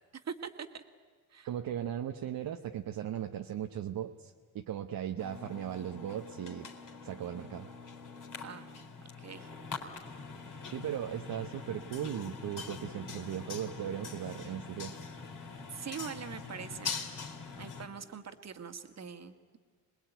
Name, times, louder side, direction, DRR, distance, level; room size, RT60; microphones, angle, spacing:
voice 1, 0.2-0.8 1.3-1.5 8.4-8.7 9.2-9.6 15.7-16.9 17.6-19.6, right 7 dB, 40° right, 8 dB, 2.0 m, -43 dB
voice 2, 1.4-6.7 7.0-7.7 10.7-15.0, right 10 dB, 55° right, 4 dB, 1.2 m, -37 dB
sound 1, 5.2-17.9, left 5 dB, 50° left, 4.1 m, -43 dB
26.0 x 20.0 x 9.3 m, 1.5 s
supercardioid pair, 70°, 41 cm